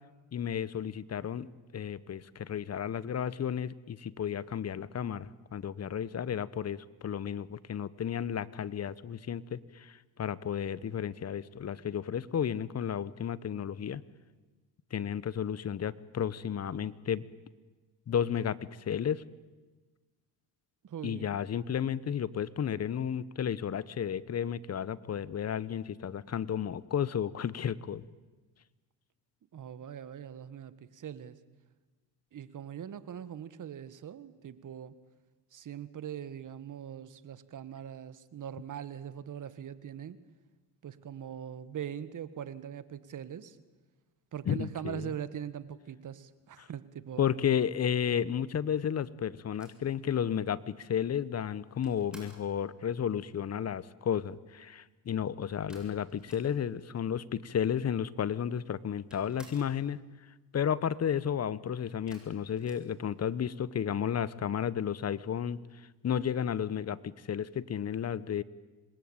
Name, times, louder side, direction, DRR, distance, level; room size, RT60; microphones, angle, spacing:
voice 1, 0.3-1.5 1.7-14.0 14.9-17.2 18.1-19.2 21.0-28.0 44.5-45.1 46.6-46.7 47.2-60.0 60.5-65.6 66.0-68.4, left 8 dB, 35° left, 19 dB, 1.1 m, -32 dB
voice 2, 20.8-21.4 29.5-31.4 32.3-34.9 35.5-40.2 40.8-43.6 44.3-47.3, right 9 dB, 45° right, 15 dB, 1.8 m, -42 dB
sound 1, 49.5-52.6 55.7-56.9 57.1-57.2 57.4-58.2 58.5-59.8 62.1-63.6, right 1 dB, ahead, 7.5 m, -57 dB
27.0 x 21.5 x 8.9 m, 1.2 s
supercardioid pair, 95°, 43 cm